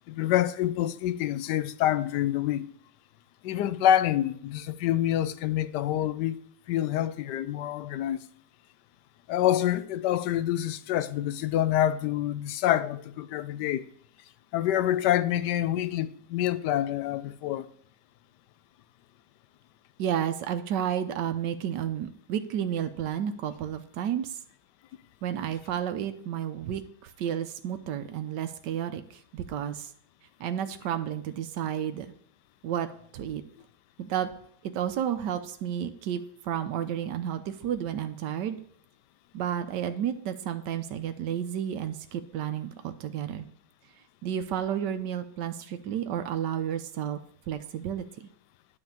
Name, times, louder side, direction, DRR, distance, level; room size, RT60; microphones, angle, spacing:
voice 1, 0.1-2.7 3.4-6.4 6.7-8.2 9.3-13.9 14.5-17.7, left 12 dB, 80° left, 1.2 m, -27 dB
voice 2, 20.0-24.4 25.2-29.9 30.4-32.1 32.6-32.9 33.1-33.4 34.0-34.3 34.6-38.6 39.3-43.5 44.2-47.2 47.5-48.3, right 9 dB, 90° right, 1.4 m, -31 dB
9.9 x 4.2 x 7.1 m
omnidirectional pair, 1.8 m